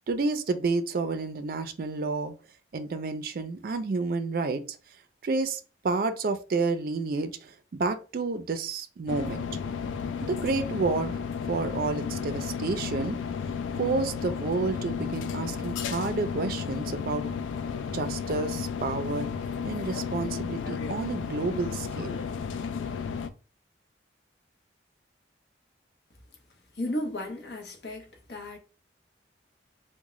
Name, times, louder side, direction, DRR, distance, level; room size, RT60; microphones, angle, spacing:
voice 1, 0.1-2.3 2.7-4.8 5.2-9.5 10.2-11.2 11.5-13.2 13.8-17.2 17.9-19.3 19.6-22.2, right 3 dB, 50° right, 0.4 m, -30 dB
sound 1, 9.1-23.3, left 6 dB, 85° left, 0.3 m, -33 dB
voice 2, 26.7-28.6, left 1 dB, 60° left, 0.8 m, -34 dB
3.6 x 2.1 x 3.0 m
head